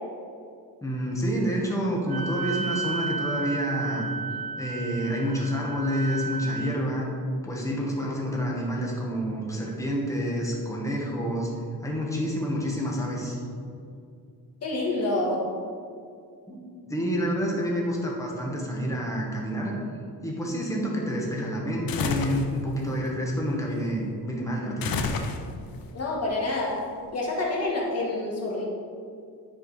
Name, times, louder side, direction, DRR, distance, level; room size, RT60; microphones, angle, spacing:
voice 1, 0.8-4.0 4.6-7.1 7.4-11.5 11.8-13.4 16.5-16.6 16.9-19.8 20.2-24.9, equal, 10° left, -3 dB, 1.5 m, -28 dB
Wind instrument woodwind instrument, 2.1-6.8, right 4 dB, 70° right, 0.7 m, -33 dB
voice 2, 14.6-15.4 25.9-26.8 27.1-28.6, left 2 dB, 40° left, -3 dB, 1.7 m, -27 dB
sound 1, 21.9-22.5 24.8-25.8, left 5 dB, 60° left, 0.7 m, -29 dB
10.0 x 4.8 x 4.9 m, 2.4 s
wide cardioid pair, 155°, 39 cm